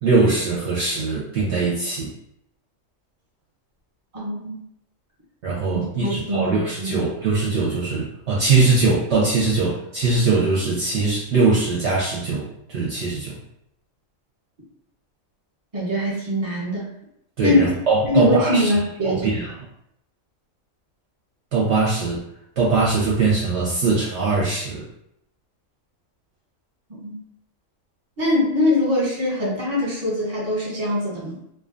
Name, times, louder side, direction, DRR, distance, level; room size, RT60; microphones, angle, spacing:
voice 1, 0.0-2.1 5.4-13.4 17.4-19.5 21.5-22.2 22.6-24.8, right 3 dB, 65° right, -5 dB, 0.8 m, -21 dB
voice 2, 4.1-4.6 5.7-7.0 15.7-16.8 17.4-17.6 18.0-19.4 27.0-27.1 28.2-31.4, left 1 dB, 30° right, -5 dB, 0.9 m, -22 dB
2.6 x 2.2 x 2.5 m, 0.76 s
omnidirectional pair, 1.4 m